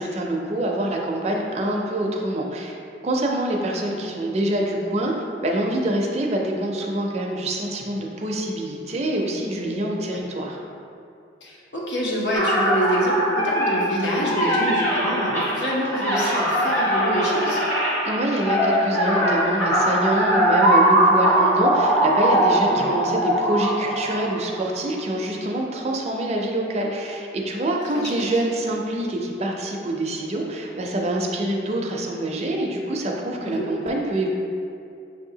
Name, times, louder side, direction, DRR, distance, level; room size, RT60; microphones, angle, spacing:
voice 1, 0.0-2.8 3.0-5.1 5.4-10.6 18.0-34.3, right 1 dB, 35° right, 0 dB, 0.4 m, -25 dB
voice 2, 11.4-17.6 22.7-22.9 27.9-28.3 33.4-33.7, equal, 75° left, -4 dB, 0.9 m, -26 dB
sound 1, 12.3-24.6, right 1 dB, 35° left, 1.0 m, -21 dB
6.3 x 2.7 x 2.7 m, 2.6 s
head